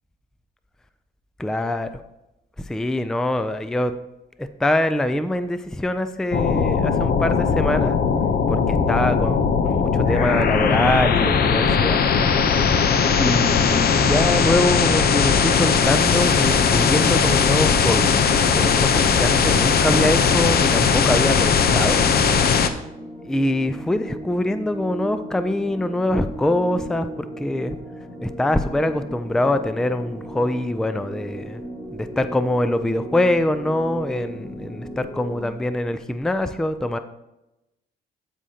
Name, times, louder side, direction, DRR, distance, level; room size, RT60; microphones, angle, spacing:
voice 1, 1.4-1.9 2.6-3.9 4.4-8.0 8.5-12.0 12.6-12.8 13.2-18.2 18.5-22.0 23.2-27.8 28.2-31.6 31.9-37.0, left 1 dB, 5° left, 10 dB, 0.4 m, -24 dB
sound 1, 6.3-22.7, left 6 dB, 50° left, 0.7 m, -19 dB
sound 2, 19.3-35.5, right 1 dB, 25° left, 1.7 m, -37 dB
14.5 x 5.0 x 2.8 m, 0.94 s
cardioid pair, 90°, 20 cm